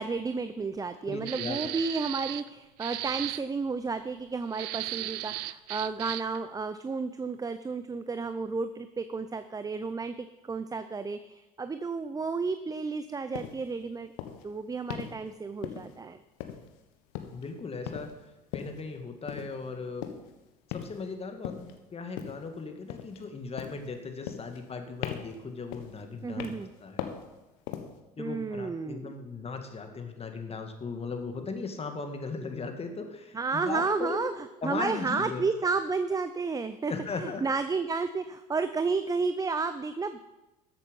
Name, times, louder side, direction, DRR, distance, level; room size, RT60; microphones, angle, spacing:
voice 1, 0.0-14.1 14.4-16.2 26.2-26.7 28.2-29.1 33.3-40.2, right 4 dB, 15° right, 11 dB, 0.6 m, -32 dB
voice 2, 1.0-1.8 17.3-18.1 18.5-20.1 20.7-26.5 26.8-27.1 28.2-34.3 34.6-35.5 36.9-37.4, left 4 dB, 30° left, 5 dB, 2.0 m, -37 dB
sound 1, 1.2-2.5 2.8-3.4 4.5-6.4, right 17 dB, 75° right, 0.5 m, -36 dB
sound 2, 13.3-13.6 14.2-14.4 14.9-15.2 15.6-16.0 16.4-16.8 17.1-17.5 17.9-18.2 18.5-18.8 19.3-19.5 20.0-20.3 20.7-21.1 21.4-21.7 22.2-22.5 22.9-23.3 23.6-23.9 24.3-24.7 25.0-25.4 25.7-26.0 26.4-26.7 27.0-27.3 27.7-28.0, left 10 dB, 70° left, 1.3 m, -38 dB
13.5 x 8.0 x 5.4 m, 1.0 s
hypercardioid pair, 70°, 21 cm